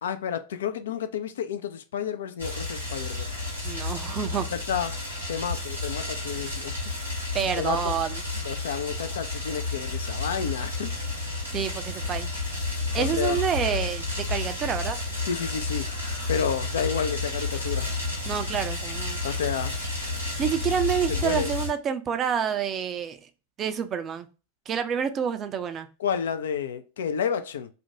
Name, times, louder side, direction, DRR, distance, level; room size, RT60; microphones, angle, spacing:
voice 1, 0.0-3.3 4.5-5.0 5.3-6.8 7.6-7.9 8.4-10.9 13.0-13.4 15.3-15.9 16.3-17.9 19.2-19.8 21.1-21.5 26.0-27.7, left 7 dB, 60° left, 0.3 m, -30 dB
sound 1, 2.4-21.7, left 3 dB, 85° left, 1.3 m, -31 dB
voice 2, 3.6-4.5 7.3-8.2 11.5-12.3 12.9-14.0 14.3-15.0 18.3-19.2 20.2-23.2 23.6-24.3 24.7-25.9, right 8 dB, 25° right, 0.3 m, -28 dB
2.5 x 2.1 x 2.7 m
figure-of-eight pair, 90°, 0 cm